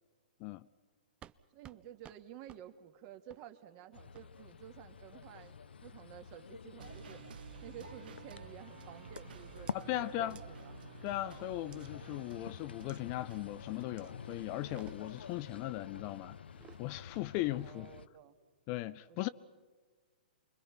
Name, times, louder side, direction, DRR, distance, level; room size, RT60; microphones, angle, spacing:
sound 1, 1.2-1.4 1.6-1.8 2.0-2.2 2.5-2.6 3.3-3.4 4.1-4.3 5.2-5.6 6.1-6.5 6.9-7.2 8.1-8.3 9.2-9.3 9.7-9.8 10.4-10.5 11.7-11.9 12.9-13.0 14.0-14.1 14.5-15.3 16.4-16.8, right 9 dB, 20° right, 0.6 m, -57 dB
voice 1, 1.5-5.6 5.8-10.8 17.6-18.4 19.1-19.3, right 11 dB, 35° right, 2.0 m, -52 dB
sound 2, 3.9-18.1, left 6 dB, 85° left, 0.7 m, -49 dB
sound 3, 6.8-15.5, right 8 dB, 65° right, 0.8 m, -53 dB
voice 2, 9.7-10.4 11.0-16.4 16.8-17.9 18.7-19.3, left 16 dB, 35° left, 0.6 m, -38 dB
29.0 x 23.0 x 5.9 m
hypercardioid pair, 135°, 5 cm